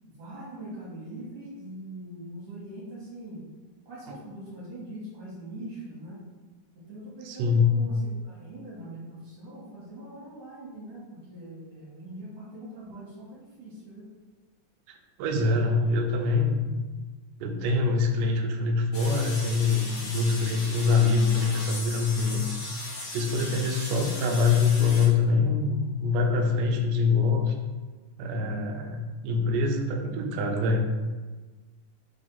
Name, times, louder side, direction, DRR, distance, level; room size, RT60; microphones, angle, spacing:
voice 1, 0.0-3.4 3.9-6.2 6.7-14.1, right 1 dB, 55° right, -7 dB, 2.4 m, -42 dB
voice 2, 7.3-7.7 14.9-16.7 17.4-22.6 23.1-27.5 28.2-30.9, left 4 dB, 90° right, 4 dB, 2.2 m, -24 dB
sound 1, 18.9-25.1, left 2 dB, 75° left, 0.9 m, -38 dB
5.1 x 3.5 x 5.4 m, 1.3 s
omnidirectional pair, 3.7 m